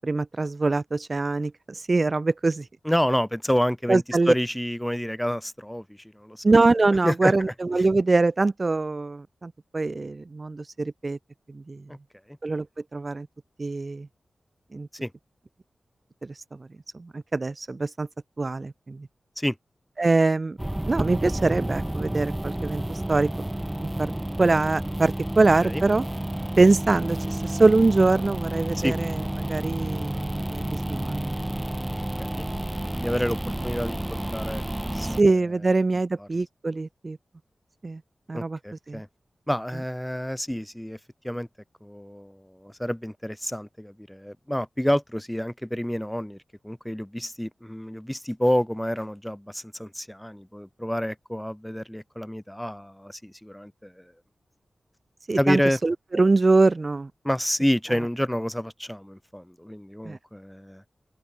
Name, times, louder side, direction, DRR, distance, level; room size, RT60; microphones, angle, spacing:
voice 1, 0.0-2.6 3.9-4.3 6.4-11.2 11.5-11.8 12.4-12.7 12.9-13.3 13.6-14.1 14.7-14.9 16.2-16.3 16.9-18.1 18.4-19.1 20.0-20.6 20.9-23.3 23.8-24.1 24.4-26.0 26.6-29.2 29.5-31.4 35.0-37.2 37.8-38.0 38.3-38.6 38.9-39.0 55.3-57.1 60.0-60.2, right 3 dB, 40° right, 0.9 m, -23 dB
voice 2, 2.8-5.8 6.1-6.4 7.0-7.3 15.0-15.1 19.4-19.5 25.6-25.8 28.7-28.9 32.2-32.5 32.9-33.4 33.6-34.6 34.9-35.2 36.2-36.3 38.3-39.1 39.5-41.0 41.2-41.5 41.8-46.4 46.6-54.0 55.4-55.8 57.2-60.8, equal, 5° left, 1.3 m, -28 dB
sound 1, 20.6-35.2, right 1 dB, 10° right, 1.0 m, -30 dB
open air
wide cardioid pair, 85°, 0 cm